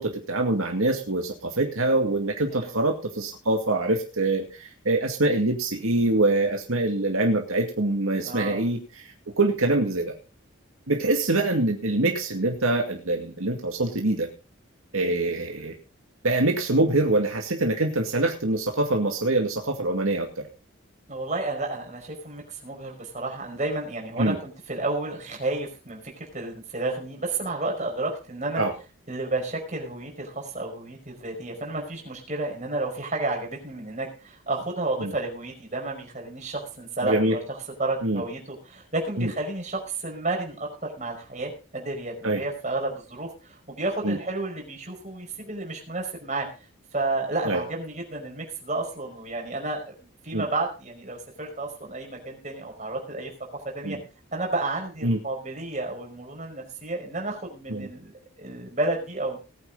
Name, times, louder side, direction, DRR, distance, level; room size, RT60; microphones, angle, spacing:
voice 1, 0.0-8.8 9.4-10.1 10.9-14.3 14.9-15.7 16.2-20.4 24.2-24.4 28.6-28.7 35.0-35.1 37.0-37.3 38.0-38.2 39.2-39.3 42.2-42.4 44.0-44.2 47.5-47.6 50.3-50.4 53.8-54.0 55.0-55.2 57.7-57.9, right 2 dB, 80° right, 2 dB, 2.2 m, -24 dB
voice 2, 8.2-8.7 21.1-28.6 29.1-46.5 46.9-49.8 50.2-53.3 53.7-54.0 54.3-58.1 58.4-59.4, right 2 dB, 35° right, 1 dB, 5.0 m, -31 dB
19.5 x 8.9 x 3.9 m, 0.33 s
head